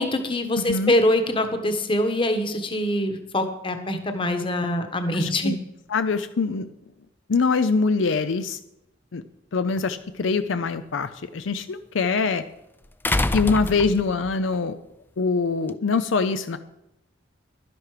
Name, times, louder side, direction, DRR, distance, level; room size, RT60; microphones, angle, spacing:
voice 1, 0.0-5.5, left 1 dB, 25° left, 7 dB, 1.2 m, -24 dB
voice 2, 0.6-0.9 5.2-5.6 5.9-6.7 7.3-8.6 9.1-9.2 9.5-12.4 13.3-14.8 15.2-16.6, left 4 dB, 70° left, 10 dB, 0.5 m, -24 dB
sound 1, 9.8-9.9 13.0-14.3 15.7-15.8, left 2 dB, 10° left, 0.4 m, -25 dB
12.0 x 10.5 x 4.9 m, 0.85 s
head